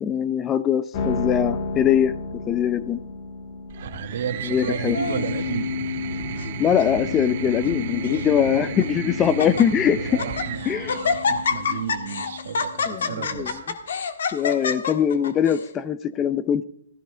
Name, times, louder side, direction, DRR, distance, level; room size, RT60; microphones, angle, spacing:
voice 1, 0.0-2.1 2.5-3.0 4.4-5.0 6.6-10.2 10.7-11.0 12.9-13.5 14.3-16.6, left 9 dB, 15° left, 14 dB, 0.5 m, -22 dB
sound 1, 0.9-13.2, left 5 dB, 35° left, 1.7 m, -33 dB
sound 2, 3.7-12.1 13.3-13.9, right 6 dB, 50° right, 1.6 m, -34 dB
voice 2, 3.8-5.7 10.1-13.6, right 8 dB, 70° right, 8 dB, 1.5 m, -33 dB
Laughter, 4.6-5.4 6.1-6.5 6.8-6.9 7.6-8.3 8.8-8.9 9.2-9.6 10.1-10.5 10.9-15.7, left 5 dB, 80° left, 1.8 m, -27 dB
16.0 x 15.0 x 3.4 m, 0.68 s
hypercardioid pair, 160°, 0 cm